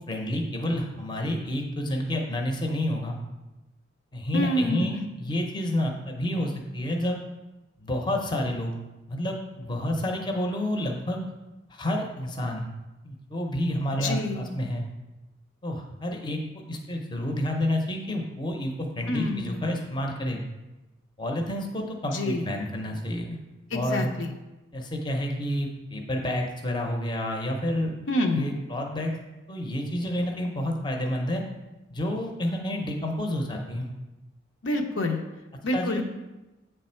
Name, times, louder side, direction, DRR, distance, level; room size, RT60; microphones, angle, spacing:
voice 1, 0.0-3.2 4.1-7.2 7.8-8.7 9.1-11.2 11.7-12.7 13.0-14.8 15.6-16.4 16.7-20.4 21.2-23.3 23.7-24.1 24.7-27.9 28.3-29.1 29.5-31.4 31.9-33.9 35.7-36.0, left 1 dB, 25° left, 2 dB, 0.6 m, -29 dB
voice 2, 4.3-5.0 14.0-14.5 19.1-19.6 22.1-22.4 23.7-24.3 28.1-28.5 34.6-35.2 35.6-36.0, left 1 dB, 80° left, 3 dB, 0.7 m, -27 dB
8.0 x 3.3 x 4.3 m, 1.0 s
head